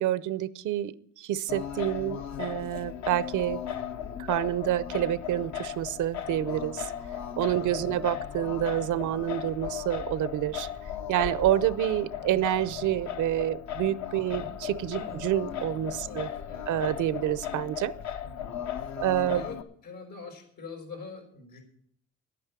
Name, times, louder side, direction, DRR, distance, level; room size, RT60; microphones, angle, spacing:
voice 1, 0.0-3.6 4.2-6.9 7.4-10.7 11.1-16.3 16.7-17.9 19.0-19.5, right 13 dB, 80° right, 17 dB, 0.7 m, -28 dB
Singing, 1.5-19.6, left 9 dB, 65° left, 1.0 m, -36 dB
voice 2, 7.6-8.0 14.4-14.5 14.9-15.2 16.0-16.7 18.2-18.5 19.0-19.1 19.3-19.6 19.8-21.6, left 4 dB, 85° left, 2 dB, 5.0 m, -44 dB
10.5 x 8.8 x 8.3 m, 0.65 s
cardioid pair, 90°, 30 cm